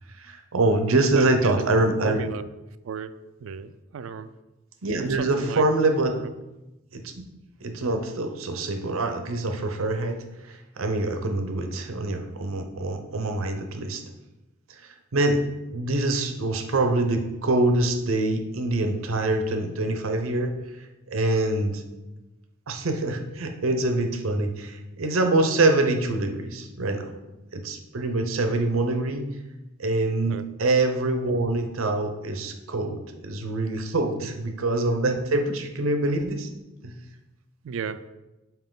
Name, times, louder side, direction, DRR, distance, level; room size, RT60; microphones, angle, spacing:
voice 1, 0.2-2.2 4.8-6.1 6.9-7.2 7.6-14.0 15.1-15.4 15.7-20.5 21.1-21.8 22.7-27.1 27.5-29.3 29.8-36.5 36.8-37.0, right 2 dB, 85° right, 5 dB, 0.7 m, -25 dB
voice 2, 1.1-2.5 2.8-3.1 3.4-4.3 5.0-5.7 6.1-6.3 30.3-30.5 37.6-38.0, right 6 dB, 70° right, 12 dB, 0.3 m, -34 dB
5.5 x 4.5 x 3.8 m, 1.0 s
head